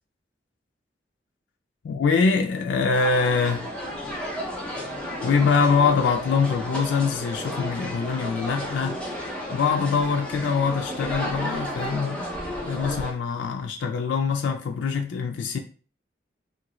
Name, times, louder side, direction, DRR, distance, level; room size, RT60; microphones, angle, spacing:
voice 1, 1.8-3.7 5.2-9.0 9.5-12.2 12.6-15.6, left 5 dB, 75° left, 0.3 m, -24 dB
sound 1, 2.9-13.1, equal, 5° left, 0.6 m, -33 dB
2.8 x 2.5 x 3.0 m
head